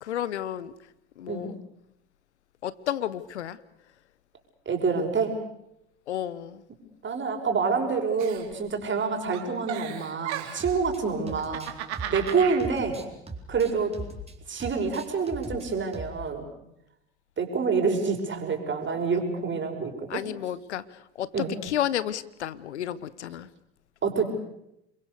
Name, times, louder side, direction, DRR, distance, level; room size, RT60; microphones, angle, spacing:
voice 1, 0.0-0.7 1.2-1.5 2.6-3.6 6.1-6.6 20.1-20.8 21.2-23.5, left 11 dB, 85° left, 18 dB, 1.0 m, -31 dB
voice 2, 4.7-5.4 7.0-11.7 12.1-13.0 13.5-14.0 14.5-16.5 17.4-20.2 21.3-21.6 24.0-24.2, right 5 dB, 35° right, 3 dB, 5.9 m, -27 dB
Giggle, 8.2-9.0 9.3-10.8 11.3-12.6, right 11 dB, 75° right, 3.2 m, -35 dB
sound 1, 10.6-11.0 11.3-14.3 14.6-15.7 15.9-16.2, right 2 dB, 20° right, 4.7 m, -39 dB
28.5 x 22.5 x 6.7 m, 0.82 s
hypercardioid pair, 70°, 33 cm